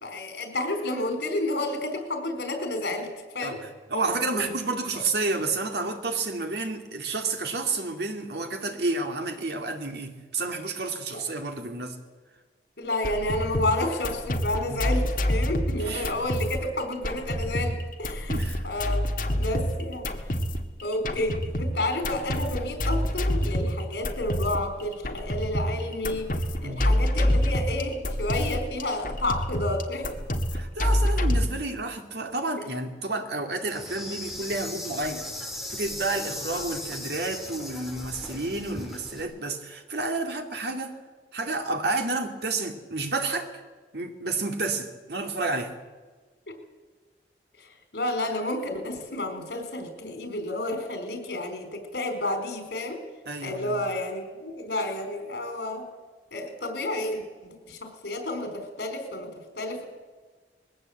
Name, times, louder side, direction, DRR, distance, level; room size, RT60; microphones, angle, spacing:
voice 1, 0.0-3.1 3.3-3.6 4.3-4.4 11.1-11.2 12.8-18.4 18.6-19.1 19.4-20.1 20.8-26.3 26.6-30.1 46.5-46.6 47.6-53.0 53.4-55.9 56.3-59.8, left 1 dB, 75° left, 5 dB, 4.5 m, -30 dB
voice 2, 3.4-12.0 14.7-14.8 15.4-15.5 15.8-16.1 18.3-18.7 26.6-26.9 30.5-35.3 35.7-41.0 41.3-43.5 43.9-45.8 53.3-53.8, right 3 dB, 75° right, 4 dB, 2.4 m, -30 dB
sound 1, 12.9-31.5, equal, 50° left, 1.9 m, -27 dB
Insect, 33.7-39.2, left 1 dB, ahead, 2.8 m, -37 dB
21.0 x 16.5 x 8.0 m, 1.4 s
head